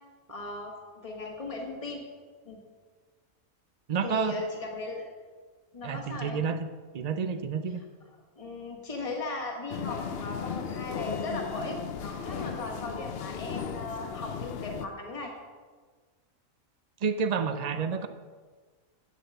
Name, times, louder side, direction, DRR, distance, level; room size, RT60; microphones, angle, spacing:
voice 1, 0.3-0.7 1.0-2.0 2.4-2.6 4.0-5.1 5.7-6.4 8.4-15.3 17.6-17.8, left 2 dB, 25° left, 0 dB, 1.7 m, -37 dB
voice 2, 3.9-4.4 5.8-6.6 6.9-7.8 17.0-18.1, right 6 dB, 75° right, 10 dB, 0.3 m, -29 dB
sound 1, 9.7-14.9, left 7 dB, 55° left, 0.8 m, -36 dB
9.0 x 7.6 x 7.8 m, 1.5 s
omnidirectional pair, 1.4 m